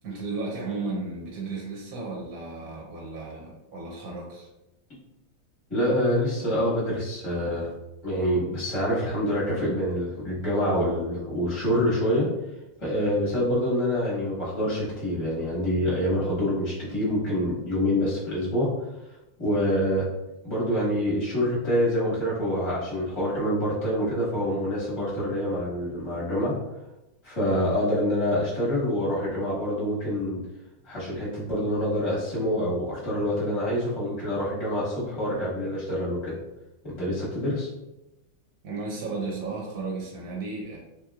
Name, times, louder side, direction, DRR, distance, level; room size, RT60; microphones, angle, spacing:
voice 1, 0.0-4.5 38.6-40.8, right 3 dB, 60° right, -3 dB, 1.0 m, -34 dB
voice 2, 5.7-7.7 8.0-12.3 12.8-18.7 19.4-20.1 20.4-26.5 27.2-30.4 30.8-36.3 36.8-37.7, equal, 25° left, -7 dB, 0.6 m, -26 dB
3.3 x 2.9 x 2.3 m, 0.92 s
omnidirectional pair, 2.1 m